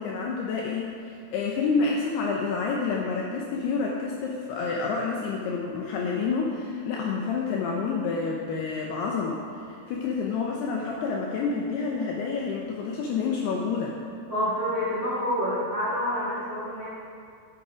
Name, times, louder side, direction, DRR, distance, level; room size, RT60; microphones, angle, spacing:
voice 1, 0.0-14.0, left 4 dB, 80° left, -1 dB, 2.4 m, -28 dB
voice 2, 14.3-16.9, equal, 50° right, -7 dB, 1.4 m, -28 dB
12.0 x 9.0 x 5.0 m, 2.3 s
omnidirectional pair, 5.5 m